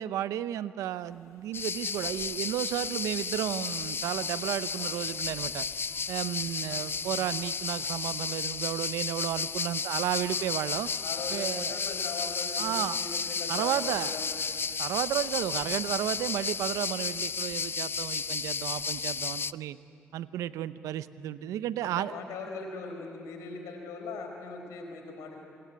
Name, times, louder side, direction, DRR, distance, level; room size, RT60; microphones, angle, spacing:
voice 1, 0.0-5.7 6.1-10.9 11.3-11.8 12.6-13.0 13.5-14.2 14.8-19.8 20.1-22.1, right 12 dB, 85° right, 14 dB, 0.7 m, -33 dB
sound 1, 0.9-5.9, left 4 dB, 65° left, 6.9 m, -57 dB
sound 2, 1.5-19.5, left 5 dB, 45° left, 0.6 m, -33 dB
voice 2, 11.0-14.3 21.8-25.4, left 4 dB, 85° left, 3 dB, 4.6 m, -40 dB
27.5 x 22.0 x 9.5 m, 2.4 s
supercardioid pair, 45°, 5 cm